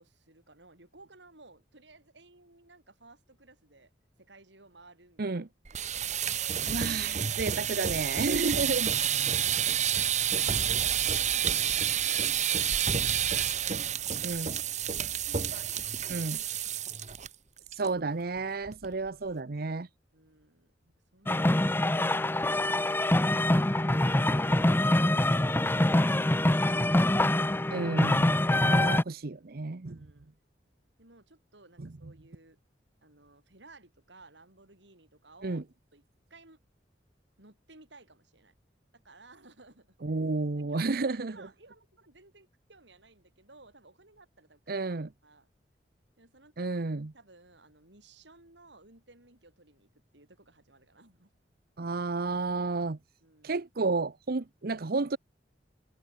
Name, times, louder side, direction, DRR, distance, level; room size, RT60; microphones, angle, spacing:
voice 1, 0.0-3.9 4.2-5.4 5.7-6.2 12.1-13.2 13.8-14.1 14.4-14.7 15.0-16.6 20.1-23.4 29.9-30.3 31.0-32.6 33.0-35.6 35.9-36.0 36.3-36.6 37.4-38.5 38.9-40.0 40.6-44.9 45.2-45.5 46.2-46.8 47.1-51.3 53.2-53.6, right 2 dB, 85° right, 7.3 m, -57 dB
sound 1, 5.6-17.3 17.6-17.9 18.2-18.3 18.7-19.1, right 9 dB, 40° right, 1.3 m, -29 dB
voice 2, 6.7-8.9 14.2-14.6 16.1-16.4 17.7-19.9 27.7-30.1 31.8-31.9 35.4-35.6 40.0-41.5 44.7-45.1 46.6-47.1 51.8-53.0 53.4-55.2, right 3 dB, 55° right, 0.8 m, -31 dB
sound 2, 21.3-29.0, left 1 dB, 10° left, 0.8 m, -25 dB
head